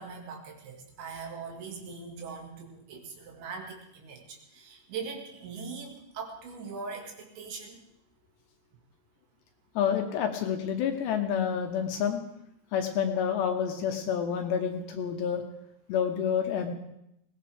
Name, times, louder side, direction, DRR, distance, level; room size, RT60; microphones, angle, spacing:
voice 1, 0.0-7.8, right 5 dB, 70° right, 1 dB, 4.2 m, -41 dB
voice 2, 9.8-12.2 12.7-15.4 15.9-16.7, left 8 dB, 75° left, 4 dB, 2.8 m, -28 dB
20.5 x 17.5 x 3.5 m, 0.81 s
omnidirectional pair, 5.6 m